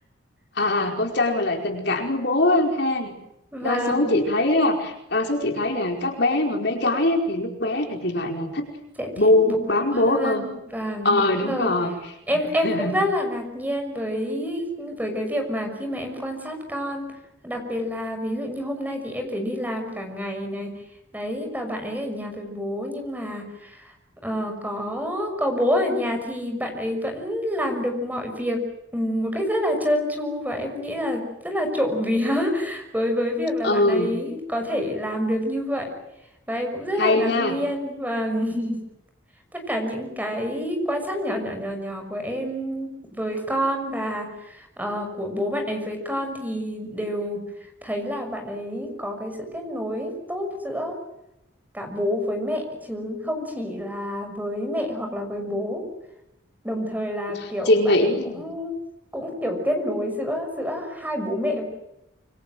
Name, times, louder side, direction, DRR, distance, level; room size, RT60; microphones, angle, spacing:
voice 1, 0.5-3.1 3.6-8.6 9.2-10.5 11.0-11.9 12.3-13.0 33.6-34.1 37.0-37.6 57.7-58.4, left 2 dB, 55° left, 3 dB, 4.9 m, -22 dB
voice 2, 3.5-4.1 9.0-9.6 9.9-11.7 12.3-17.1 17.4-20.7 21.1-23.9 24.2-28.6 28.9-35.9 36.5-38.8 39.5-47.4 47.8-51.0 51.7-55.8 56.6-57.8 58.0-58.7 59.1-61.6, equal, 10° right, 4 dB, 6.2 m, -28 dB
27.0 x 25.0 x 7.9 m, 0.86 s
head